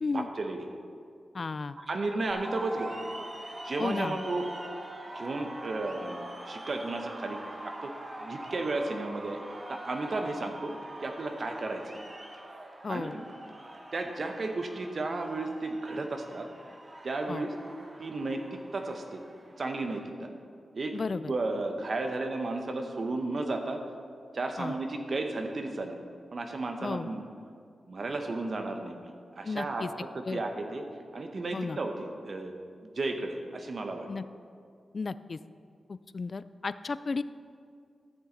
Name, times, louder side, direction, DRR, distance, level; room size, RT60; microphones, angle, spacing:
voice 1, 0.1-0.7 1.8-3.0 3.6-4.5 5.1-7.4 7.6-7.9 8.2-9.4 9.7-10.7 11.0-12.0 12.9-13.2 13.9-16.5 17.0-17.5 18.0-19.2 19.6-20.3 20.7-21.0 21.3-23.8 24.3-26.0 26.3-27.2 27.9-30.9 31.1-32.5 32.8-34.1, right 2 dB, 55° right, 5 dB, 1.0 m, -33 dB
voice 2, 1.3-1.8 3.8-4.2 12.8-13.2 17.3-17.4 20.9-21.3 24.6-24.7 26.8-27.1 29.4-29.9 30.2-30.4 31.5-31.8 34.1-34.2 34.9-35.4 35.9-37.2, left 4 dB, 50° left, 14 dB, 0.3 m, -33 dB
sound 1, 2.3-20.1, right 1 dB, 30° right, 1.1 m, -44 dB
13.0 x 7.2 x 3.9 m, 2.2 s
cardioid pair, 70°, 0 cm